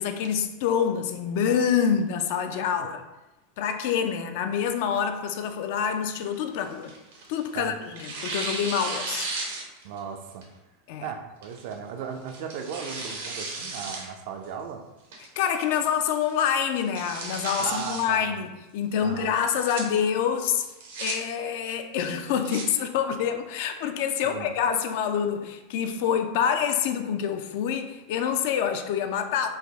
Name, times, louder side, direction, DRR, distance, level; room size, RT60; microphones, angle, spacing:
voice 1, 0.0-3.0 3.6-6.9 7.3-9.3 10.9-11.1 15.4-20.6 21.0-29.5, left 8 dB, 65° left, 7 dB, 0.3 m, -26 dB
voice 2, 2.5-2.9 7.5-7.8 9.8-10.5 11.0-14.8 17.6-18.4 19.0-19.3 24.2-24.5, right 6 dB, 65° right, 6 dB, 0.4 m, -36 dB
Tearing, 6.1-7.5 8.0-10.0 10.4-10.5 11.4-11.7 12.3-14.1 14.4-14.5 15.1-15.5 15.9-16.0 16.3-16.4 16.8-18.0 19.3-19.8 20.6-21.1 22.1-22.6, right 3 dB, 80° right, 0.7 m, -35 dB
3.3 x 2.0 x 3.4 m, 1.0 s
supercardioid pair, 120°, 0 cm